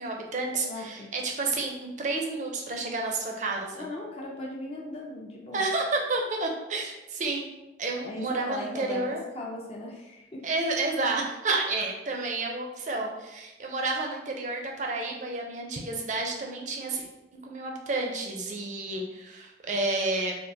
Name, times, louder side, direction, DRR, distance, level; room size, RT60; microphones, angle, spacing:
voice 1, 0.0-3.9 5.5-7.5 7.8-9.2 10.4-17.1 17.3-20.4, right 3 dB, 40° right, 1 dB, 0.5 m, -30 dB
voice 2, 0.5-1.1 3.8-5.7 8.0-10.5, left 1 dB, 30° left, -2 dB, 0.4 m, -38 dB
3.6 x 2.3 x 2.6 m, 1.0 s
head